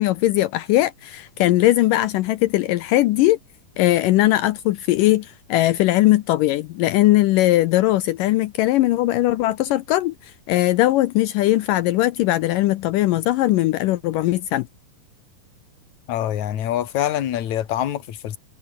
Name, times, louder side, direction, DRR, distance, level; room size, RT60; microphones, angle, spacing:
voice 1, 0.0-3.4 3.8-14.7, left 16 dB, 80° left, 2.0 m, -19 dB
voice 2, 16.1-18.4, left 11 dB, 55° left, 2.8 m, -25 dB
omnidirectional pair, 4.5 m